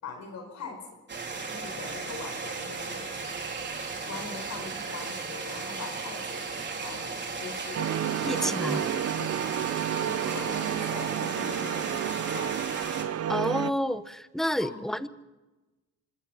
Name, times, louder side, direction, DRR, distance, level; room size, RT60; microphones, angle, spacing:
voice 1, 0.0-1.0 1.5-3.2 4.1-9.4 10.0-12.7 14.6-14.8, left 4 dB, 65° left, 3 dB, 4.8 m, -42 dB
sound 1, 1.1-13.0, right 4 dB, 35° right, 4.0 m, -36 dB
sound 2, 3.2-10.9, right 9 dB, 80° right, 2.4 m, -46 dB
sound 3, 7.7-13.7, right 10 dB, 55° right, 0.7 m, -30 dB
voice 2, 8.3-8.8 13.3-15.1, equal, ahead, 13 dB, 1.1 m, -29 dB
25.5 x 19.5 x 5.8 m, 1.1 s
cardioid pair, 90°, 30 cm